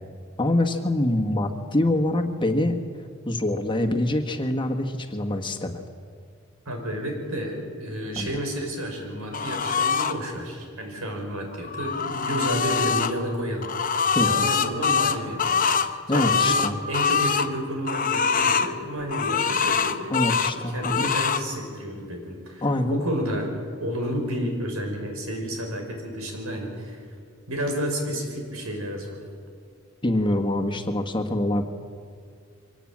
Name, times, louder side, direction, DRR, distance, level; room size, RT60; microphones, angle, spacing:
voice 1, 0.4-2.8 3.2-5.8 8.2-8.3 14.1-14.5 16.1-16.7 20.1-21.1 22.6-23.0 30.0-31.6, left 1 dB, 25° left, 4 dB, 1.6 m, -25 dB
voice 2, 6.7-13.7 14.0-16.6 16.9-20.2 20.5-23.5 23.8-27.0 27.5-29.2, equal, 90° right, 2 dB, 5.6 m, -31 dB
sound 1, 9.3-10.1 11.5-13.1 13.6-17.5 17.9-18.7 19.1-20.5 20.8-21.4, left 6 dB, 40° left, 0.9 m, -24 dB
24.0 x 18.5 x 8.8 m, 2.1 s
head